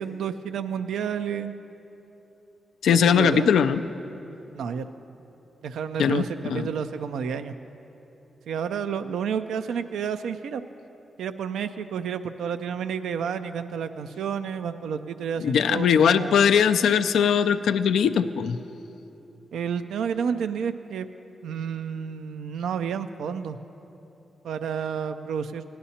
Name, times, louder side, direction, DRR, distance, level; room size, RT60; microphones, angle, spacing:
voice 1, 0.0-1.5 3.0-3.5 4.5-4.9 5.6-7.5 8.5-10.6 11.2-16.5 19.5-21.1 21.4-23.6 24.4-25.6, right 7 dB, 80° right, 10 dB, 0.3 m, -30 dB
voice 2, 2.8-3.8 6.0-6.2 6.5-6.7 15.4-18.6, left 7 dB, 80° left, 11 dB, 0.3 m, -20 dB
18.0 x 11.0 x 2.8 m, 3.0 s
supercardioid pair, 40°, 0 cm